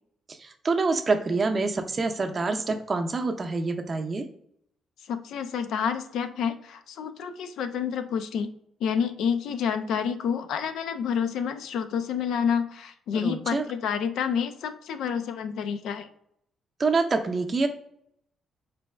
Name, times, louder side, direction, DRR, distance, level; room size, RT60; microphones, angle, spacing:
voice 1, 0.3-4.2 13.2-13.6 16.8-17.7, right 3 dB, 35° right, 5 dB, 0.5 m, -26 dB
voice 2, 5.1-8.5 8.8-16.1, left 7 dB, 80° left, 10 dB, 0.3 m, -29 dB
4.0 x 2.2 x 3.2 m, 0.70 s
cardioid pair, 90°, 0 cm